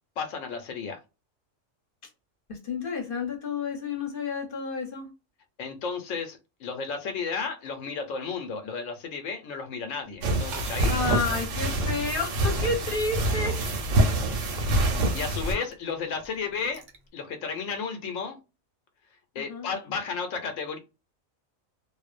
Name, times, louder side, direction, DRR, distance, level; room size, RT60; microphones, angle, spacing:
voice 1, 0.2-1.0 5.6-11.2 14.5-14.7 15.0-16.8 17.1-18.4 19.3-20.8, left 5 dB, 90° left, 1.0 m, -33 dB
voice 2, 2.5-5.1 10.8-13.6 14.5-14.8 19.3-19.7, left 4 dB, 50° left, 0.9 m, -31 dB
Glass / Fill (with liquid), 10.0-17.1, right 3 dB, 50° right, 0.6 m, -44 dB
sound 1, 10.2-15.5, right 1 dB, 80° right, 1.0 m, -26 dB
2.5 x 2.0 x 2.4 m
omnidirectional pair, 1.3 m